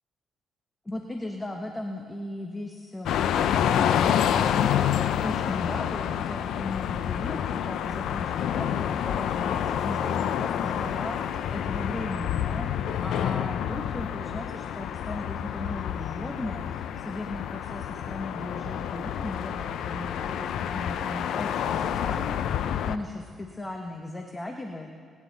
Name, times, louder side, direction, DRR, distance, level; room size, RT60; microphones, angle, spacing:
voice 1, 0.8-24.9, left 2 dB, 15° left, 3 dB, 1.1 m, -37 dB
sound 1, 3.1-23.0, left 9 dB, 75° left, 0.5 m, -28 dB
24.5 x 9.7 x 4.1 m, 2.2 s
cardioid pair, 90°, 0 cm